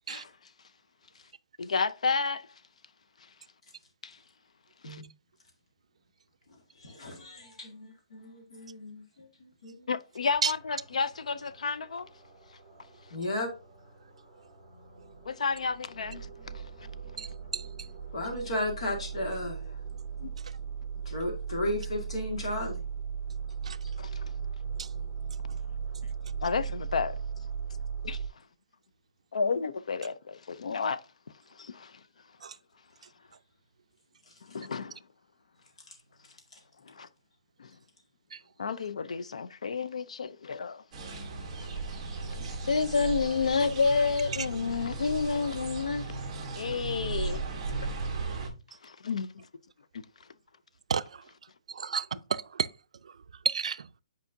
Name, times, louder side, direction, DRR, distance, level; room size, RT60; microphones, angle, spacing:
voice 1, 1.6-2.5 4.0-4.2 4.8-5.0 9.9-12.1 15.3-16.3 16.5-16.7 20.2-20.3 24.0-24.3 26.4-27.2 28.0-28.2 29.3-31.0 31.5-32.0 34.5-35.0 36.8-37.1 37.6-37.8 38.6-40.8 41.6-41.7 42.7-46.1 46.6-47.4 48.8-49.5 49.9-50.0, left 5 dB, 75° left, 0.5 m, -30 dB
voice 2, 6.7-9.9 13.1-13.5 18.1-19.8 21.1-22.8 23.8-23.9 34.3-34.4 36.5-36.6 41.9-42.0, left 1 dB, 60° left, 1.9 m, -35 dB
sound 1, 10.3-28.3, right 6 dB, 5° left, 2.0 m, -38 dB
sound 2, 40.9-48.5, right 3 dB, 15° right, 1.3 m, -36 dB
voice 3, 51.8-52.7 53.4-53.8, right 6 dB, 70° right, 0.4 m, -30 dB
8.2 x 4.8 x 2.7 m
hypercardioid pair, 180°, 4 cm